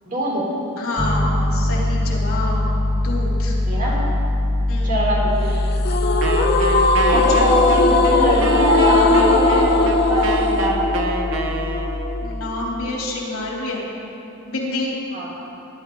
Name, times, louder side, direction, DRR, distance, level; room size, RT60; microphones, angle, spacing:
voice 1, 0.1-0.4 3.6-4.0 4.8-5.5 7.1-11.1 15.1-15.3, right 1 dB, 40° right, -4 dB, 3.4 m, -23 dB
voice 2, 0.8-2.7 3.0-3.6 4.7-5.1 7.1-7.5 12.2-13.8 14.5-14.9, left 2 dB, 70° left, -4 dB, 3.3 m, -27 dB
Piano, 1.0-12.3, left 1 dB, ahead, 1.3 m, -23 dB
sound 1, 5.8-12.9, left 3 dB, 45° left, 0.8 m, -19 dB
Wind instrument woodwind instrument, 6.2-12.2, right 3 dB, 60° right, 1.0 m, -28 dB
21.5 x 11.0 x 3.9 m, 3.0 s
head